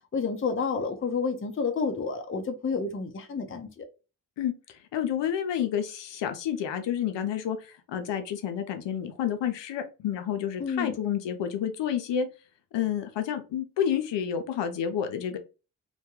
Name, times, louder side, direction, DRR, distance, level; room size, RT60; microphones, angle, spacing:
voice 1, 0.1-3.8 10.6-10.9, left 5 dB, 30° left, 0.6 m, -30 dB
voice 2, 4.9-12.3 12.7-15.4, left 9 dB, 80° left, 0.6 m, -29 dB
2.3 x 2.2 x 2.9 m
supercardioid pair, 45°, 43 cm